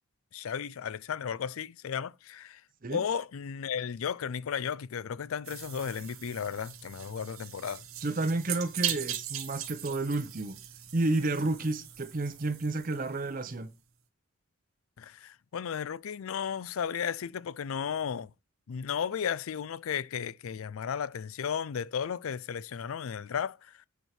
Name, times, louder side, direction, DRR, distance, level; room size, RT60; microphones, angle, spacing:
voice 1, 0.3-2.6 2.9-7.8 15.0-18.3 18.7-23.9, left 7 dB, 80° left, 0.4 m, -34 dB
sound 1, 5.4-13.6, right 10 dB, 85° right, 1.2 m, -40 dB
voice 2, 8.0-10.6 10.9-13.7, right 2 dB, 40° right, 0.6 m, -31 dB
8.1 x 4.6 x 5.8 m
head